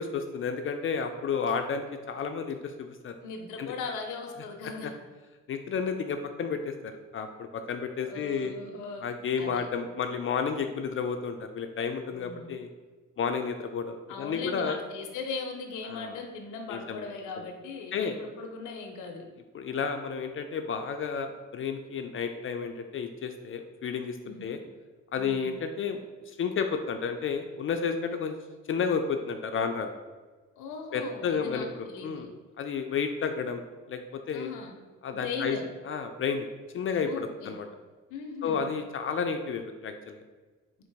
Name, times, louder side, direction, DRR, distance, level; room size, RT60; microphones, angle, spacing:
voice 1, 0.0-3.1 3.6-3.7 4.8-4.9 5.5-8.5 9.0-12.7 13.2-14.8 15.8-16.2 16.7-17.1 17.9-18.2 19.5-24.6 25.1-26.0 26.3-28.4 28.7-29.9 30.9-32.3 32.6-33.6 33.9-34.5 35.0-35.6 35.9-36.5 36.7-37.7 38.4-40.2, left 6 dB, 45° left, 6 dB, 0.4 m, -31 dB
voice 2, 3.2-4.9 8.1-9.0 9.4-9.7 12.1-12.5 14.1-19.3 24.2-24.6 30.6-32.3 34.3-34.7 35.1-35.6 37.0-37.5 38.1-38.6, left 4 dB, 85° left, 3 dB, 0.6 m, -38 dB
3.8 x 2.5 x 4.6 m, 1.3 s
cardioid pair, 90°, 30 cm